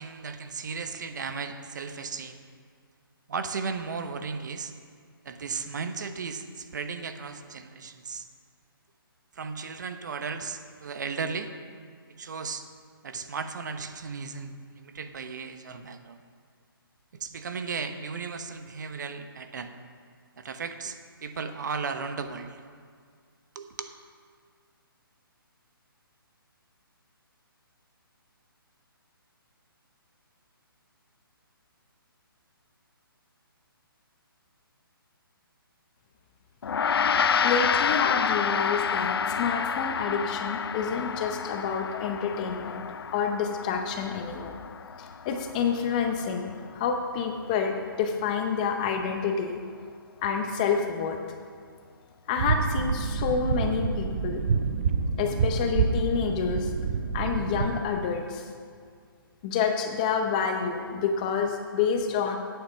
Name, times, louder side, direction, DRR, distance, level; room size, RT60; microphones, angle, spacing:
voice 1, 0.0-2.4 3.3-4.7 5.2-8.3 9.3-11.5 12.2-12.7 13.0-16.2 17.1-19.7 20.4-22.6 23.5-23.9, right 5 dB, 50° right, 8 dB, 0.9 m, -35 dB
Gong, 36.6-46.3, left 6 dB, 85° left, 0.4 m, -29 dB
voice 2, 37.4-42.8 43.1-44.5 45.0-49.6 50.2-51.2 52.3-54.4 55.2-56.7 57.1-58.5 59.4-62.4, left 6 dB, 20° left, 4 dB, 0.6 m, -28 dB
sound 1, 52.4-57.8, right 5 dB, 30° right, 0.6 m, -27 dB
9.1 x 8.4 x 5.7 m, 2.1 s
hypercardioid pair, 165°, 12 cm